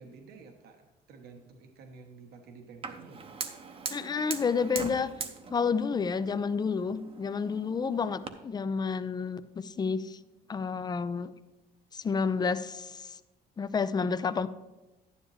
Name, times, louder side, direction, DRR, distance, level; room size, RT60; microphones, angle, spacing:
voice 1, 0.0-3.3, right 4 dB, 70° right, 4 dB, 1.1 m, -51 dB
Fire, 2.8-8.3, right 5 dB, 35° right, 0.8 m, -41 dB
voice 2, 3.9-5.1 5.5-10.2 10.5-11.3 11.9-13.2 13.6-14.5, left 5 dB, 25° left, 13 dB, 0.5 m, -30 dB
11.0 x 10.0 x 3.2 m, 1.1 s
cardioid pair, 110°, 17 cm